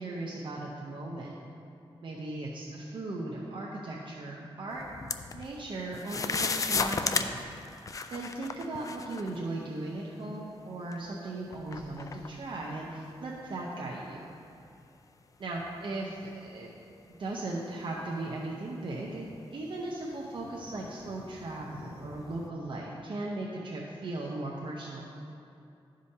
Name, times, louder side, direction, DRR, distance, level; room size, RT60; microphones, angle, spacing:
voice 1, 0.0-1.3 2.0-4.9 5.3-7.4 8.1-14.3 15.4-16.7 17.1-25.0, right 2 dB, 55° right, -3 dB, 0.7 m, -37 dB
sound 1, 4.7-5.6 5.9-9.4 10.2-10.3 10.9-13.5 13.9-14.0 14.6-14.9 15.3-17.5 18.0-18.1 19.1-22.5, left 4 dB, 35° left, 0.3 m, -36 dB
12.5 x 5.0 x 2.8 m, 2.6 s
wide cardioid pair, 120°, 10 cm